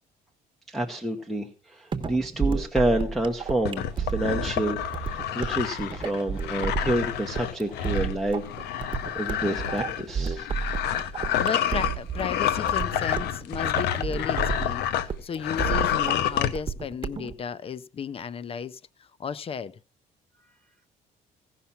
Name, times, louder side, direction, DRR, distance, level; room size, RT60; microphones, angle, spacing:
voice 1, 0.7-10.6, right 1 dB, ahead, 1.0 m, -29 dB
sound 1, 1.9-17.3, right 6 dB, 30° right, 1.1 m, -32 dB
sound 2, 3.6-15.1 15.4-16.5, left 10 dB, 85° left, 0.9 m, -28 dB
voice 2, 11.4-19.8, left 6 dB, 35° left, 0.5 m, -34 dB
16.0 x 5.8 x 5.7 m
cardioid pair, 110°, 17 cm